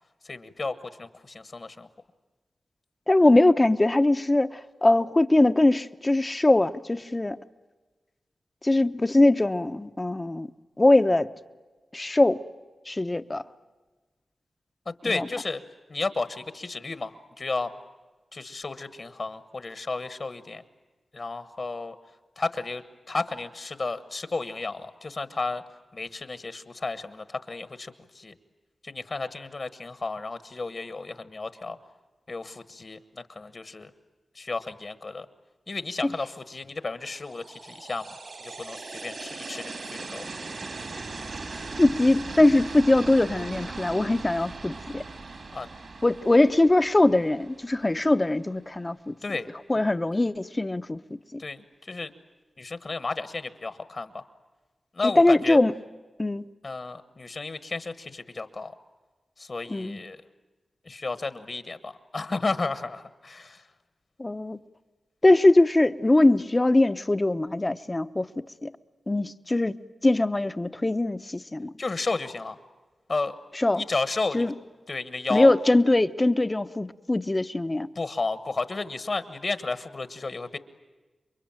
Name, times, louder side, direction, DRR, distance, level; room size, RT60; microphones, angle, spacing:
voice 1, 0.2-1.9 14.8-15.6 15.9-17.7 18.3-20.6 21.1-22.0 22.4-25.6 25.9-28.3 28.8-31.8 32.3-33.9 34.3-35.3 35.7-38.1 38.4-40.3 45.5-45.7 49.2-49.5 51.4-52.1 52.6-54.2 54.9-55.6 56.6-58.7 59.4-60.2 60.8-63.6 71.8-72.6 73.1-73.4 73.7-74.5 74.9-75.5 77.9-80.6, left 3 dB, 45° left, 12 dB, 1.3 m, -32 dB
voice 2, 3.1-7.4 8.6-10.5 10.8-11.3 11.9-12.4 12.9-13.4 15.0-15.3 36.0-36.1 41.8-45.0 46.0-49.1 49.7-51.4 55.2-55.7 56.2-56.4 59.7-60.0 64.2-64.6 65.2-68.3 68.6-68.7 69.1-69.7 70.0-71.7 73.5-73.8 74.3-74.5 75.3-77.9, left 2 dB, 25° left, 12 dB, 0.9 m, -21 dB
sound 1, 37.2-48.2, right 3 dB, 65° right, 3.5 m, -39 dB
28.5 x 23.5 x 8.9 m, 1.3 s
wide cardioid pair, 105°, 0 cm